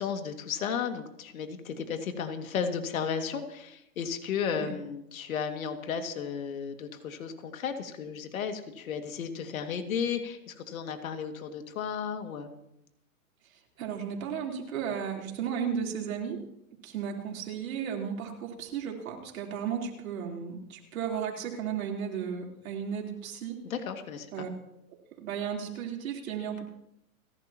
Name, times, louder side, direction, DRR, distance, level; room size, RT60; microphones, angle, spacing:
voice 1, 0.0-12.5 23.6-24.5, left 7 dB, 70° left, 5 dB, 2.4 m, -34 dB
voice 2, 13.8-16.4 16.8-23.6 24.3-24.5 25.2-26.6, right 7 dB, 70° right, 0 dB, 3.9 m, -34 dB
29.5 x 11.5 x 3.0 m, 0.80 s
hypercardioid pair, 140°, 42 cm